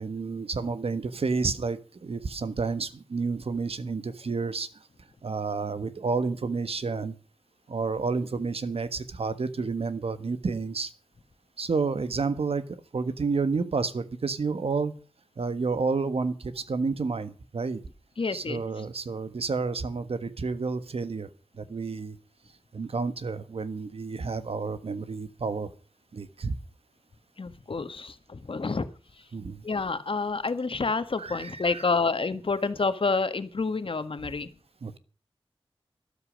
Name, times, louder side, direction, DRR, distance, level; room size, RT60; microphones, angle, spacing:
voice 1, 0.0-4.7 5.2-7.1 7.7-10.9 11.6-14.9 15.4-17.8 18.3-21.3 21.5-22.2 22.7-25.7 26.1-26.6 29.3-29.6 31.2-31.8 34.8-35.0, right 4 dB, 80° right, 13 dB, 1.4 m, -30 dB
voice 2, 18.2-18.8 27.4-28.9 29.1-29.3 29.6-34.5, left 4 dB, 65° left, 11 dB, 1.5 m, -29 dB
13.0 x 12.5 x 6.4 m, 0.37 s
wide cardioid pair, 70°, 10 cm